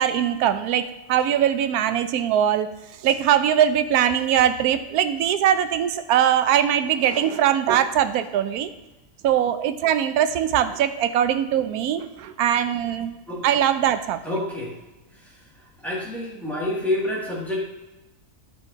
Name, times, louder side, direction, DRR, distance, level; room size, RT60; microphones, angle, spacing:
voice 1, 0.0-2.7 3.0-8.7 9.2-13.2 13.4-14.2, right 10 dB, 85° right, 11 dB, 1.1 m, -21 dB
voice 2, 14.2-14.7 15.8-17.6, left 1 dB, ahead, -6 dB, 2.0 m, -27 dB
9.9 x 6.0 x 2.7 m, 1.0 s
omnidirectional pair, 1.6 m